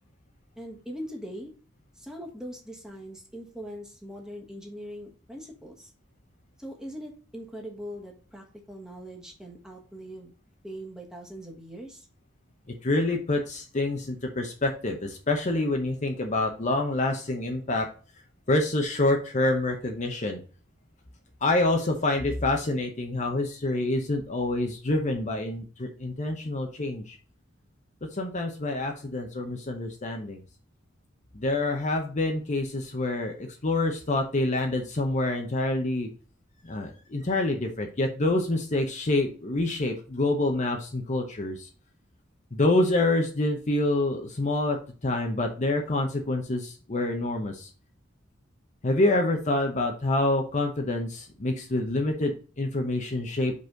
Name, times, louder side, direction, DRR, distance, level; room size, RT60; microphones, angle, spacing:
voice 1, 0.6-1.5 2.0-5.9 6.6-10.3 10.6-12.1, equal, 5° right, -1 dB, 1.4 m, -41 dB
voice 2, 12.8-17.9 18.5-20.4 21.4-27.2 28.2-30.4 31.3-36.1 36.6-41.7 42.5-44.8 45.0-47.7 48.8-53.5, left 2 dB, 40° left, 3 dB, 0.9 m, -27 dB
5.3 x 4.1 x 5.1 m, 0.38 s
head